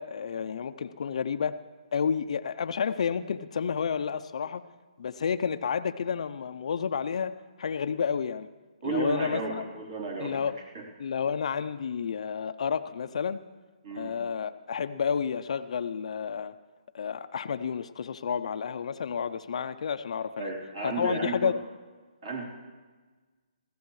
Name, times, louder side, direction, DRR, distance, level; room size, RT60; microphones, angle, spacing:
voice 1, 0.0-1.6 1.9-4.6 5.0-7.3 7.6-8.5 8.8-9.6 10.2-10.6 11.0-13.4 14.0-16.5 16.9-20.5 20.8-21.5, left 6 dB, 55° left, 11 dB, 0.5 m, -30 dB
voice 2, 8.8-10.5 10.7-10.9 13.8-14.2 20.4-21.6 22.2-22.4, right 3 dB, 45° right, -1 dB, 3.6 m, -33 dB
21.0 x 15.5 x 3.2 m, 1.4 s
hypercardioid pair, 160°, 4 cm